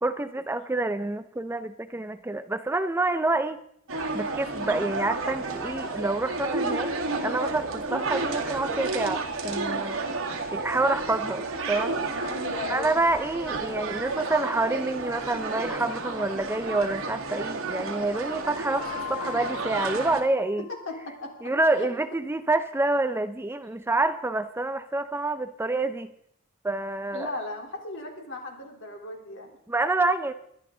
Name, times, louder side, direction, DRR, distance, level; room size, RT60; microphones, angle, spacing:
voice 1, 0.0-3.6 4.1-10.0 10.5-12.0 12.7-20.7 21.4-26.1 26.6-27.3 29.7-30.3, right 2 dB, 10° right, 11 dB, 0.4 m, -27 dB
sound 1, 3.9-20.2, right 3 dB, 75° right, 2.1 m, -31 dB
voice 2, 12.2-13.0 20.9-21.5 21.8-21.9 27.1-29.5, left 3 dB, 60° left, 1 dB, 3.4 m, -37 dB
sound 2, 18.7-21.2, left 17 dB, 20° left, 3.4 m, -40 dB
22.5 x 11.5 x 3.8 m, 0.73 s
head